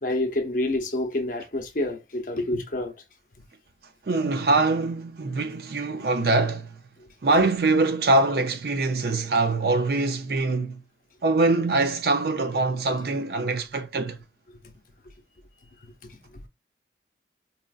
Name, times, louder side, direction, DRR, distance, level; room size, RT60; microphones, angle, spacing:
voice 1, 0.0-2.9 15.8-16.5, left 1 dB, 45° left, 0.7 m, -28 dB
voice 2, 4.1-6.7 7.2-10.8 11.2-14.2, right 2 dB, 55° right, 0.4 m, -23 dB
4.1 x 2.5 x 2.4 m
head